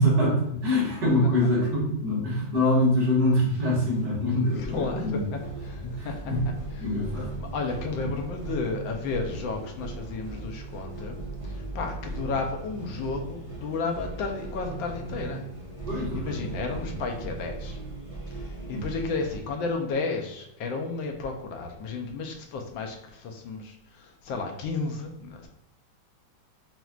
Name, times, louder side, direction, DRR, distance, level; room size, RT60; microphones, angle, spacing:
voice 1, 0.0-5.3 5.8-6.4 6.8-7.3 8.0-8.1 15.9-16.5 16.9-17.0 18.7-18.9, left 1 dB, 60° right, -6 dB, 2.2 m, -24 dB
voice 2, 4.6-6.3 7.4-11.2 11.4-15.4 16.1-17.8 18.3-25.5, left 4 dB, 75° left, 3 dB, 1.4 m, -33 dB
sound 1, 4.7-19.4, right 3 dB, 20° right, 1.0 m, -38 dB
6.0 x 2.7 x 2.4 m, 0.86 s
omnidirectional pair, 2.2 m